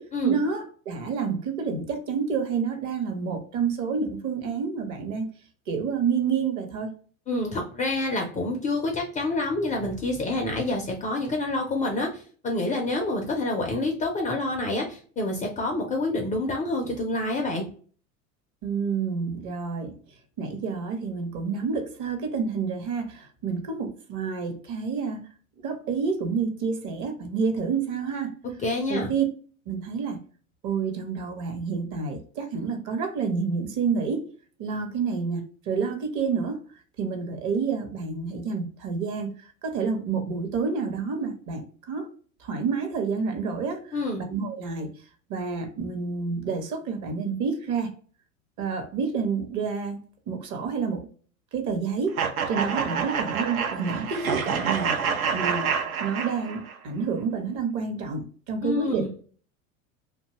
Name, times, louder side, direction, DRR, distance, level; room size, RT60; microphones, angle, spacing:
voice 1, 0.0-5.3 5.7-6.9 18.6-20.0 20.4-25.3 25.6-28.4 28.9-29.2 29.7-30.2 30.6-34.3 34.6-36.6 37.0-42.1 42.4-45.0 45.3-47.9 48.6-50.0 50.3-51.1 51.5-52.2 52.5-55.0 55.3-59.0, right 5 dB, 45° right, 0.8 m, -29 dB
voice 2, 7.3-17.7 28.6-29.1 43.9-44.2 58.6-59.1, left 2 dB, 20° left, 0.3 m, -27 dB
sound 1, 52.2-56.8, right 6 dB, 80° right, 0.6 m, -27 dB
2.6 x 2.2 x 2.8 m
hypercardioid pair, 90°, 42 cm